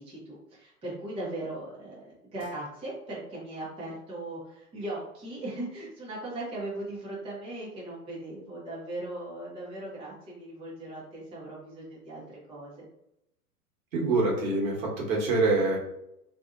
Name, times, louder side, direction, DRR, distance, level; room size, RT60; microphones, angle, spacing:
voice 1, 0.0-12.7, right 1 dB, 10° right, -7 dB, 0.8 m, -38 dB
voice 2, 13.9-15.8, right 3 dB, 60° right, -3 dB, 1.3 m, -25 dB
2.7 x 2.6 x 2.4 m, 0.82 s
hypercardioid pair, 115°, 46 cm